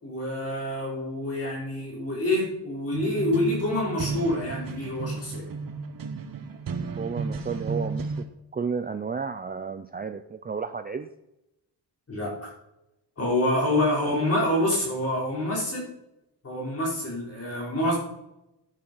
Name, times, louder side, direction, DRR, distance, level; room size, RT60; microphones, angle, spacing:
voice 1, 0.0-5.4 12.1-12.3 13.2-15.8 16.4-18.0, left 1 dB, 35° left, -3 dB, 5.4 m, -27 dB
sound 1, 2.9-8.2, right 4 dB, 50° right, 1.3 m, -33 dB
voice 2, 7.0-8.3 8.5-11.1 14.1-14.2, right 5 dB, 20° right, 9 dB, 0.5 m, -32 dB
15.0 x 9.0 x 5.6 m, 0.89 s
wide cardioid pair, 170°, 43 cm